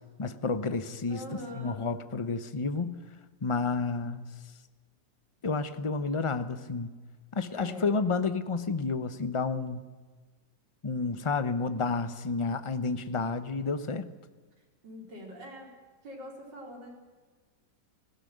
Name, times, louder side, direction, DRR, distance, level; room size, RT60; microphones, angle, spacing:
voice 1, 0.2-1.2 1.5-3.0 3.4-4.2 5.4-7.0 7.3-9.8 10.8-14.1, left 4 dB, 25° left, 11 dB, 0.7 m, -30 dB
voice 2, 1.1-1.9 7.5-7.9 14.8-15.7 16.0-16.9, equal, 75° right, 0 dB, 5.2 m, -43 dB
19.5 x 16.0 x 9.3 m, 1.4 s
omnidirectional pair, 2.0 m